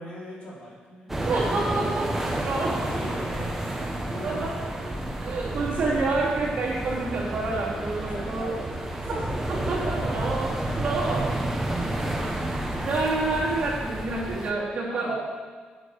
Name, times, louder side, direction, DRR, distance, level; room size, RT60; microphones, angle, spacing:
voice 1, 0.0-1.2 2.5-3.8 4.0-5.2 7.9-8.7 9.0-9.4 10.0-10.2 11.9-12.4 14.9-15.2, equal, 40° left, -5 dB, 3.1 m, -40 dB
sound 1, 1.1-14.5, right 1 dB, 10° right, 1.1 m, -30 dB
voice 2, 1.2-2.9 3.8-3.9 4.2-4.5 4.8-4.9 5.2-8.5 9.1-9.2 9.5-10.5 10.8-11.3 12.8-15.2, right 3 dB, 45° right, -6 dB, 3.3 m, -28 dB
9.1 x 8.4 x 6.7 m, 1.5 s
wide cardioid pair, 180°, 3 cm